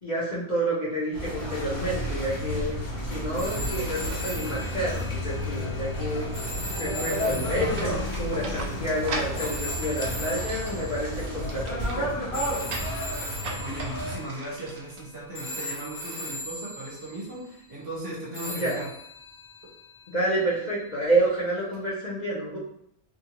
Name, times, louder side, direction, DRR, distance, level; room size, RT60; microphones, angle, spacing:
voice 1, 0.0-2.8 3.1-6.3 6.8-12.8 18.5-18.8 20.1-22.6, right 1 dB, 40° left, -8 dB, 0.8 m, -29 dB
sound 1, 1.1-14.2, left 1 dB, 60° left, 1.1 m, -32 dB
sound 2, 3.4-11.6 12.3-15.0 15.3-17.5 18.3-20.6 21.7-21.9, left 1 dB, 15° left, 1.1 m, -39 dB
sound 3, 7.7-15.6, right 3 dB, 80° right, 1.0 m, -40 dB
voice 2, 13.6-18.9, right 1 dB, 50° right, -5 dB, 1.1 m, -37 dB
2.8 x 2.5 x 2.9 m, 0.71 s
omnidirectional pair, 1.4 m